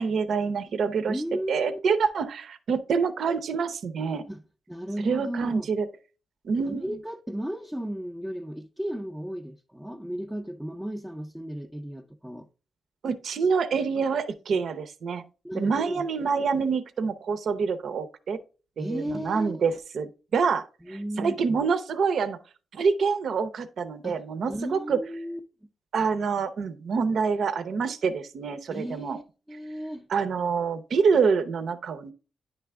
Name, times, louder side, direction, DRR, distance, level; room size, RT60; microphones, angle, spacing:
voice 1, 0.0-1.2 1.5-4.2 5.0-5.9 6.4-7.0 13.0-15.2 15.6-18.4 18.8-20.1 20.3-22.4 22.7-25.0 25.9-29.2 30.1-32.1, right 5 dB, 65° right, 0.7 m, -26 dB
voice 2, 1.1-1.8 4.3-4.4 4.7-5.7 6.7-12.5 15.4-16.1 18.8-19.6 20.8-21.6 24.0-24.2 24.5-25.4 28.7-29.2 29.5-30.1, equal, 5° right, 0.5 m, -34 dB
10.0 x 3.4 x 3.6 m
wide cardioid pair, 140°, 0 cm